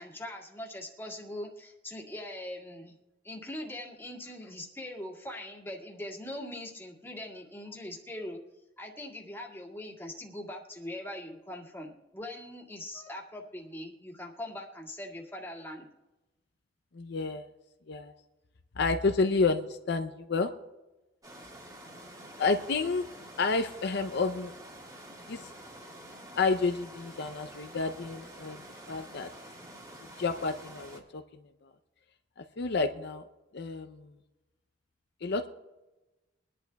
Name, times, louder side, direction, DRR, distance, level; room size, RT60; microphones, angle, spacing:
voice 1, 0.0-2.9 3.2-8.4 8.8-15.9, left 1 dB, 15° left, -2 dB, 2.0 m, -41 dB
voice 2, 16.9-17.4 17.9-18.1 18.8-20.5 22.4-23.0 23.4-24.5 25.3-25.4 26.3-29.3 30.2-31.2 32.6-33.2 33.5-34.1 35.2-35.5, left 4 dB, 60° left, 7 dB, 0.6 m, -30 dB
sound 1, 21.2-31.0, right 1 dB, 20° right, 2.0 m, -48 dB
23.0 x 11.0 x 2.3 m, 1.1 s
head